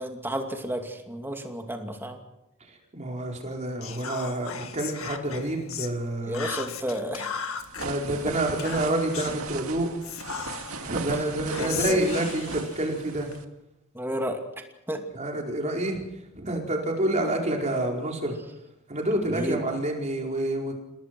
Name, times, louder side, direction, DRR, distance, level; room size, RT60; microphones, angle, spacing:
voice 1, 0.0-2.2 6.2-7.4 11.6-12.0 13.9-14.4 14.9-15.0 19.3-19.6, right 1 dB, 10° right, 4 dB, 2.5 m, -32 dB
voice 2, 2.7-6.5 7.8-9.9 10.8-13.3 15.1-16.0 16.4-18.4 18.9-20.7, right 1 dB, 35° right, 1 dB, 4.7 m, -28 dB
Whispering, 3.8-5.9 6.3-7.9 8.6-9.4 10.0-10.9 11.5-13.4, left 7 dB, 70° left, 1.9 m, -36 dB
sound 1, 7.6-13.4, right 4 dB, 85° right, 2.1 m, -37 dB
28.5 x 19.0 x 6.1 m, 0.91 s
head